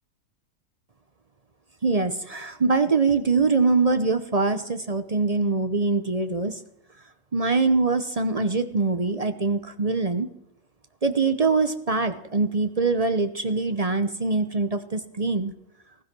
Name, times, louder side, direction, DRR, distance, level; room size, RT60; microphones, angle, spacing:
voice 1, 1.8-6.6 7.3-10.3 11.0-15.5, right 3 dB, 40° right, 10 dB, 0.5 m, -23 dB
19.0 x 13.0 x 6.0 m, 0.77 s
omnidirectional pair, 1.8 m